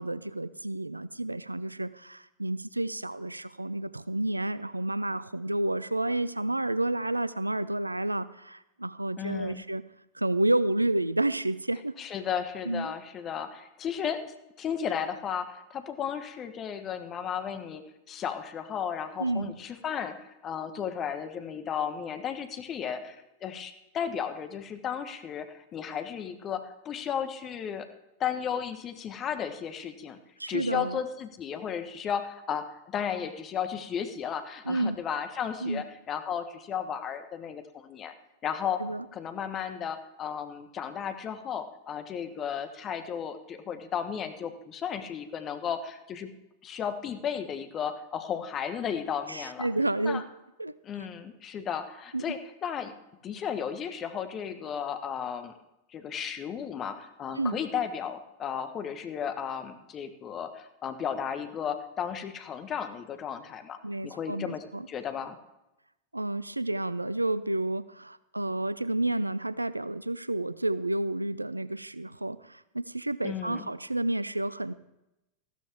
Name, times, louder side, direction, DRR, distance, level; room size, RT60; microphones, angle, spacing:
voice 1, 0.0-9.8 10.1-11.9 12.7-12.9 19.2-19.5 30.4-31.0 34.7-35.0 35.6-35.8 38.8-39.0 49.3-50.3 50.6-50.8 52.1-52.3 57.4-57.6 63.8-64.9 66.1-74.7, right 1 dB, 85° right, 17 dB, 0.4 m, -30 dB
voice 2, 9.2-9.6 12.0-17.8 18.1-27.9 28.2-30.2 30.5-38.1 38.4-38.8 39.1-46.3 46.6-49.7 50.0-50.2 50.8-52.9 53.2-55.5 55.9-65.4 73.2-73.7, left 8 dB, 30° left, 9 dB, 1.2 m, -34 dB
14.5 x 12.5 x 3.5 m, 0.90 s
figure-of-eight pair, 90°, 0 cm